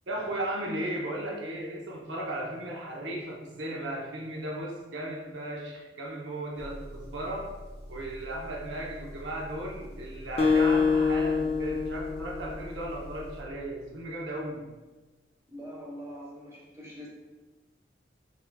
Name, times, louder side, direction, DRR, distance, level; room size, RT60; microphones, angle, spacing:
voice 1, 0.1-7.5 7.9-14.6, right 1 dB, 90° right, -2 dB, 0.7 m, -36 dB
Engine, 6.6-13.5, equal, 65° right, 1.1 m, -45 dB
Acoustic guitar, 10.4-13.1, left 5 dB, 35° left, 0.4 m, -26 dB
voice 2, 15.5-17.1, equal, 15° right, -5 dB, 1.1 m, -43 dB
5.9 x 2.7 x 2.2 m, 1.2 s
head